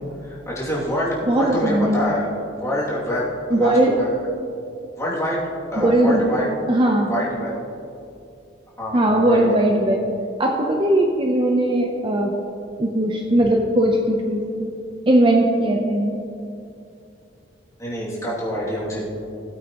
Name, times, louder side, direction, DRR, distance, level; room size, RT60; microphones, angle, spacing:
voice 1, 0.2-2.3 2.6-4.3 5.0-5.4 5.7-6.5 7.1-7.6 8.8-9.6 17.8-19.0, equal, 15° left, -7 dB, 2.5 m, -26 dB
voice 2, 1.3-2.1 3.5-4.0 5.8-6.3 6.7-7.1 8.9-10.1 10.4-12.3 12.8-14.7 15.1-16.2, right 1 dB, 25° right, 1 dB, 0.6 m, -19 dB
16.5 x 8.6 x 3.0 m, 2.6 s
head